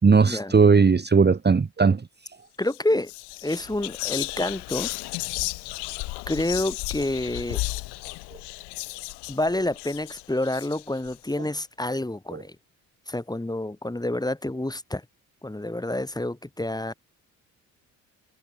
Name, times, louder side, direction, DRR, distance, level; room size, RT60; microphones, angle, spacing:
voice 1, 0.0-2.0 12.3-12.4, right 5 dB, 25° right, 1.5 m, -18 dB
Whispering, 2.6-2.8 3.1-11.2, left 24 dB, 85° left, 4.5 m, -34 dB
voice 2, 2.6-3.1 3.4-4.9 6.3-7.6 9.3-12.6 13.1-15.0 15.4-16.9, left 1 dB, 10° left, 2.8 m, -28 dB
supercardioid pair, 65°, 39 cm